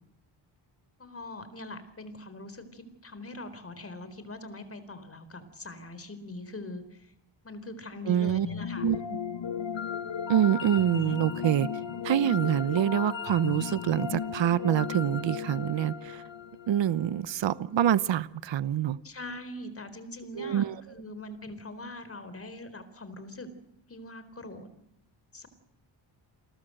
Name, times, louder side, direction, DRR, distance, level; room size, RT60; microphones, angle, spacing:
voice 1, 1.0-7.1 7.4-8.9 19.0-23.5 23.9-24.7 25.3-25.5, left 2 dB, 30° left, 12 dB, 4.2 m, -42 dB
voice 2, 8.1-8.5 8.8-9.0 10.3-11.7 12.0-16.2 16.7-19.0 20.4-20.7, right 10 dB, 70° right, 17 dB, 1.0 m, -26 dB
sound 1, 8.3-17.4, left 7 dB, 75° left, 1.9 m, -35 dB
28.5 x 21.5 x 7.9 m, 0.79 s
wide cardioid pair, 120°, 45 cm